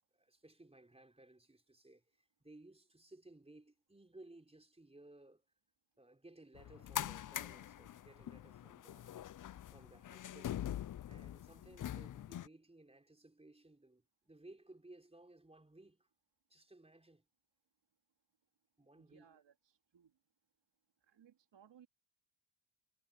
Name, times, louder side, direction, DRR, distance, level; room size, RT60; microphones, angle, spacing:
voice 1, 0.1-5.4 6.0-9.1 9.7-16.1 16.5-17.3 18.8-19.4, right 2 dB, 10° right, 3.9 m, -60 dB
sound 1, 6.5-12.5, left 11 dB, 40° left, 0.6 m, -44 dB
voice 2, 18.9-20.1 21.0-21.9, right 8 dB, 60° right, 3.6 m, -65 dB
cardioid pair, 75°, 49 cm